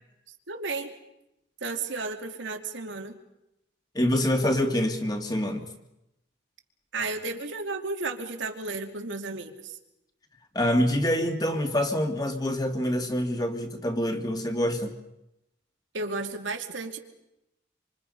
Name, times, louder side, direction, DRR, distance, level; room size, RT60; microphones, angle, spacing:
voice 1, 0.5-0.9 1.6-3.2 6.9-9.8 15.9-17.0, right 3 dB, 85° right, 4 dB, 2.6 m, -33 dB
voice 2, 3.9-5.7 10.5-14.9, left 1 dB, 20° left, 5 dB, 2.1 m, -26 dB
27.0 x 26.0 x 5.5 m, 0.88 s
head